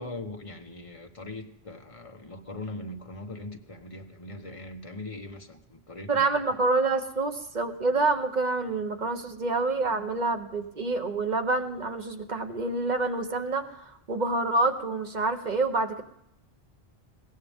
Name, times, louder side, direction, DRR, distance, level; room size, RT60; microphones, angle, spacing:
voice 1, 0.0-6.4, left 2 dB, 30° left, 4 dB, 1.3 m, -41 dB
voice 2, 6.1-16.0, right 3 dB, 45° right, 6 dB, 1.1 m, -27 dB
21.0 x 16.5 x 3.6 m, 0.76 s
omnidirectional pair, 1.1 m